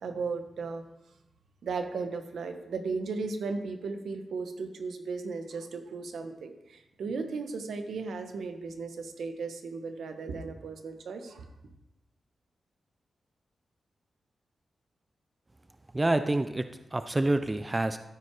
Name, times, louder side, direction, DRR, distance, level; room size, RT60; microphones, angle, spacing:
voice 1, 0.0-0.8 1.6-11.5, right 4 dB, 80° right, 6 dB, 1.3 m, -36 dB
voice 2, 15.9-18.0, right 2 dB, 15° right, 10 dB, 0.4 m, -27 dB
13.5 x 7.6 x 4.9 m, 0.93 s
wide cardioid pair, 170°, 0 cm